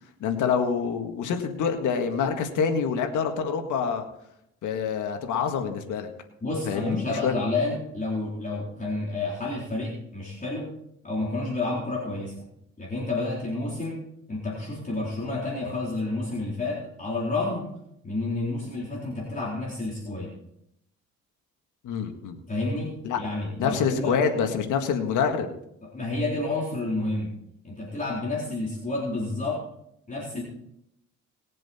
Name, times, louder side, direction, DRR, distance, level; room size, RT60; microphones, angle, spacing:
voice 1, 0.2-4.0 4.6-6.1 6.7-7.3 21.8-22.4 23.0-23.2 23.6-25.5, left 6 dB, 80° left, 5 dB, 1.8 m, -26 dB
voice 2, 6.4-10.7 11.0-12.4 12.8-14.0 14.3-17.7 18.0-20.3 22.5-24.2 25.8-27.3 27.6-29.6 30.1-30.4, left 2 dB, 25° left, -4 dB, 3.9 m, -30 dB
20.0 x 7.6 x 4.4 m, 0.76 s
cardioid pair, 90°, 30 cm